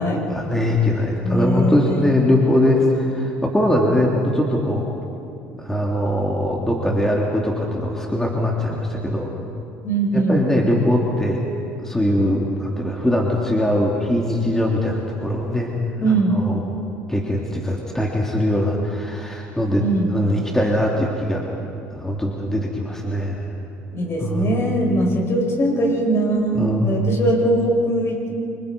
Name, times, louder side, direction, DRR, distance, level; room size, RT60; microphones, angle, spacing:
voice 1, 0.3-4.9 5.6-9.3 10.1-11.4 11.8-15.7 16.3-16.6 17.1-19.9 20.1-21.4 21.9-23.5 24.2-24.8 26.5-27.2, left 1 dB, 5° left, -2 dB, 3.0 m, -21 dB
voice 2, 1.2-2.1 9.8-10.4 16.0-16.3 19.8-20.1 23.9-28.3, right 2 dB, 45° left, 0 dB, 6.5 m, -21 dB
26.0 x 25.0 x 5.4 m, 2.7 s
supercardioid pair, 90°, 6 cm